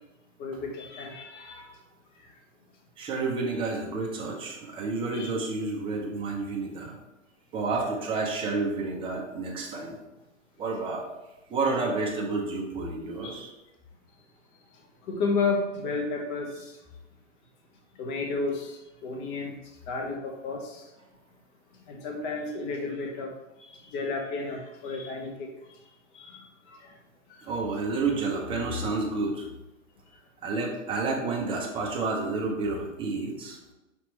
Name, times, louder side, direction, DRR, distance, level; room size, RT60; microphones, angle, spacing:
voice 1, 0.4-1.7 5.1-5.3 13.2-13.4 15.1-16.7 18.0-19.5 19.9-20.8 21.9-23.3 23.9-25.5 26.1-26.8, left 3 dB, 30° left, 2 dB, 0.9 m, -32 dB
voice 2, 3.0-6.9 7.5-10.0 10.6-11.1 11.5-13.5 27.4-29.5 30.4-33.6, right 3 dB, 15° right, -1 dB, 0.7 m, -30 dB
5.1 x 2.9 x 3.1 m, 0.98 s
hypercardioid pair, 120°, 38 cm